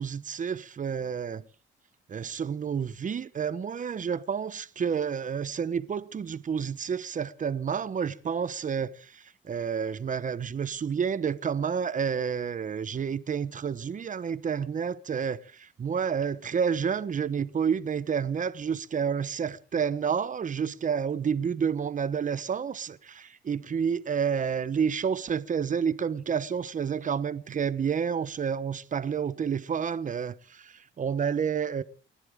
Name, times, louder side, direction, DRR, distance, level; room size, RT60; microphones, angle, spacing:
voice 1, 0.0-1.4 2.1-31.8, right 7 dB, 40° right, 1.1 m, -30 dB
29.5 x 11.5 x 3.7 m
cardioid pair, 90°, 20 cm